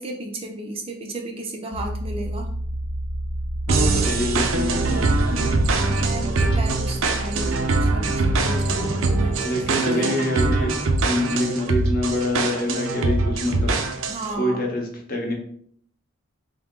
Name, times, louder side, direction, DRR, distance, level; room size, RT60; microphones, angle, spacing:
voice 1, 0.0-2.5 5.3-9.4 9.7-10.2 14.1-14.6, right 2 dB, 25° right, 2 dB, 0.5 m, -34 dB
sound 1, 1.7-8.8, equal, 75° left, 0.6 m, -30 dB
voice 2, 3.7-5.5 9.4-13.7 14.4-15.3, left 1 dB, 45° left, 1 dB, 0.8 m, -26 dB
sound 2, 3.7-14.3, right 3 dB, 80° right, 0.5 m, -23 dB
3.6 x 2.7 x 3.6 m, 0.62 s
head